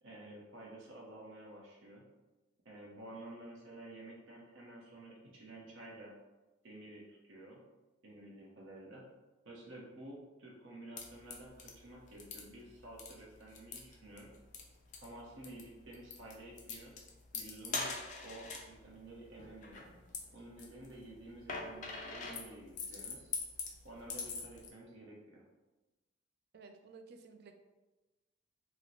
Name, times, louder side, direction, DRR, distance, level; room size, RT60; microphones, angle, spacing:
voice 1, 0.0-2.0 2.6-6.1 6.6-7.6 8.0-9.0 9.4-14.3 15.0-16.9 17.3-17.9 18.2-19.9 20.3-23.3 23.8-25.4, right 1 dB, 75° right, -3 dB, 0.8 m, -51 dB
sound 1, 11.0-24.7, left 4 dB, 40° left, 0.4 m, -45 dB
voice 2, 26.5-27.5, right 4 dB, 50° right, 6 dB, 0.3 m, -54 dB
2.9 x 2.1 x 3.8 m, 1.1 s
head